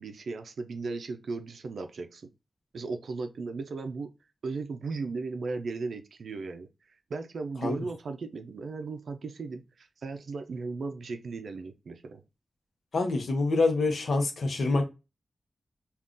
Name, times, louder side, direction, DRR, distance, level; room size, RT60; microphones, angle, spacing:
voice 1, 0.0-2.3 2.7-4.1 4.4-12.2, right 4 dB, 75° right, 0.4 m, -36 dB
voice 2, 12.9-14.8, left 3 dB, 65° left, 0.7 m, -26 dB
3.6 x 2.3 x 2.4 m
wide cardioid pair, 150°, 0 cm